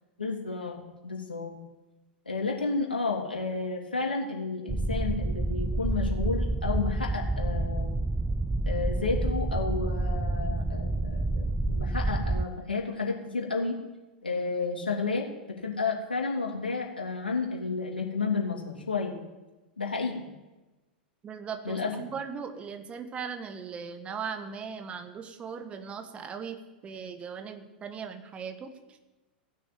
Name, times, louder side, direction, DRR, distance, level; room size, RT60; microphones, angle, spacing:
voice 1, 0.2-1.5 2.2-7.9 8.6-13.7 14.2-19.1 19.8-20.2 21.6-21.9, left 4 dB, 80° left, 0 dB, 3.0 m, -31 dB
sound 1, 4.7-12.4, right 2 dB, 5° right, 0.4 m, -28 dB
voice 2, 21.2-29.1, right 6 dB, 20° right, 7 dB, 1.6 m, -39 dB
16.5 x 6.5 x 8.7 m, 1.1 s
figure-of-eight pair, 95°, 5 cm